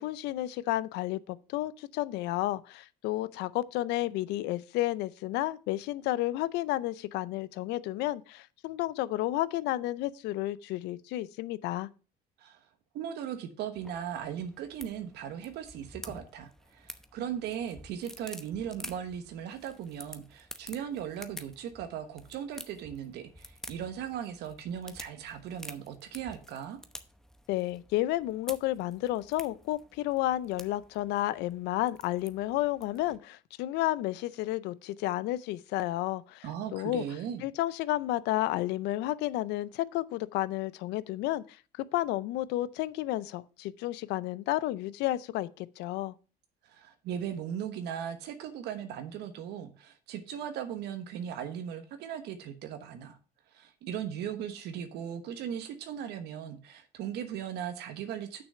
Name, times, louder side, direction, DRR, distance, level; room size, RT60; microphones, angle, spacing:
voice 1, 0.0-11.9 27.5-37.0 37.4-46.1, left 15 dB, 90° left, 0.5 m, -31 dB
voice 2, 12.9-26.8 36.4-37.4 46.6-53.2 53.5-58.4, right 9 dB, 80° right, 1.1 m, -38 dB
sound 1, 13.7-33.2, equal, 5° left, 0.9 m, -50 dB
6.4 x 6.1 x 6.7 m
cardioid pair, 110°, 17 cm